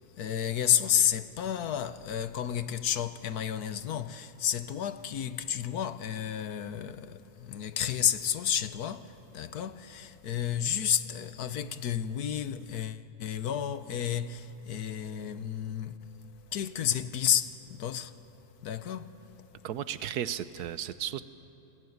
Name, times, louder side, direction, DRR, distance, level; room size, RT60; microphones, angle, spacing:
voice 1, 0.2-16.0 16.5-18.1 18.6-19.2, left 9 dB, 80° left, 1.5 m, -31 dB
voice 2, 19.6-21.2, right 10 dB, 85° right, 1.4 m, -34 dB
28.0 x 21.0 x 9.5 m
omnidirectional pair, 1.6 m